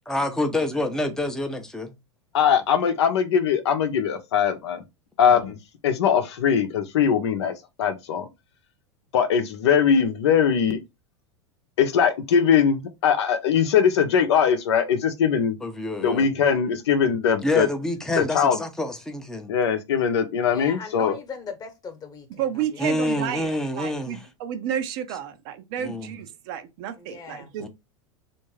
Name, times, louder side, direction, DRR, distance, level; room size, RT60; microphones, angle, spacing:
voice 1, 0.1-1.9 5.2-5.5 15.6-16.3 17.4-19.5 22.8-24.3 25.8-26.1 27.6-27.7, left 1 dB, 5° left, 0.7 m, -27 dB
voice 2, 2.3-4.8 5.2-5.6 5.8-8.3 9.1-10.8 11.8-15.6 16.0-17.7 18.2-18.6 19.5-21.1, left 7 dB, 65° left, 0.7 m, -21 dB
voice 3, 20.5-22.9 27.0-27.5, left 5 dB, 25° left, 1.1 m, -39 dB
voice 4, 22.4-27.6, right 10 dB, 50° right, 0.7 m, -31 dB
3.5 x 2.6 x 3.1 m
figure-of-eight pair, 90°, 15 cm